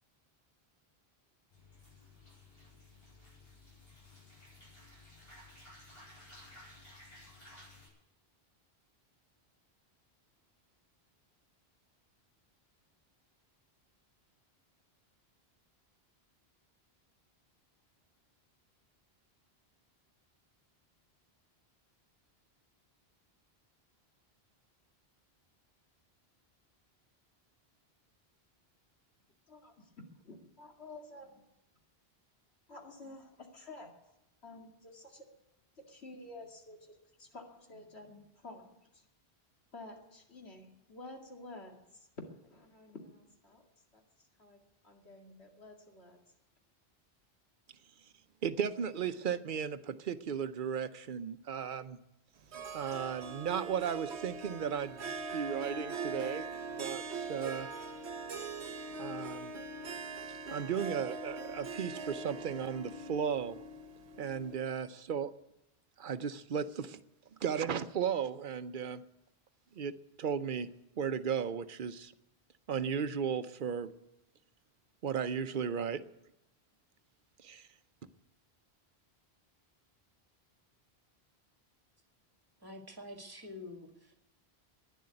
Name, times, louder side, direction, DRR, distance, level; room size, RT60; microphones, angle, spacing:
sound 1, 1.5-7.9, left 2 dB, 65° left, 8.2 m, -56 dB
voice 1, 30.1-31.4 32.7-33.9 34.4-35.3 35.8-39.0 39.7-43.6 43.9-46.2, left 2 dB, 85° left, 1 dB, 2.6 m, -51 dB
voice 2, 48.4-52.0 52.7-56.5 56.8-57.7 59.0-59.6 60.5-63.6 64.2-65.3 66.0-67.0 67.4-69.0 69.8-69.9 70.2-70.7 71.0-72.1 72.7-73.9 75.0-76.0 77.4-77.7, right 7 dB, 55° right, 12 dB, 0.8 m, -35 dB
Harp, 52.5-64.7, right 3 dB, 90° right, 1.2 m, -42 dB
voice 3, 82.6-84.2, left 2 dB, 20° right, 3 dB, 2.0 m, -47 dB
12.0 x 10.5 x 9.7 m, 0.90 s
omnidirectional pair, 1.1 m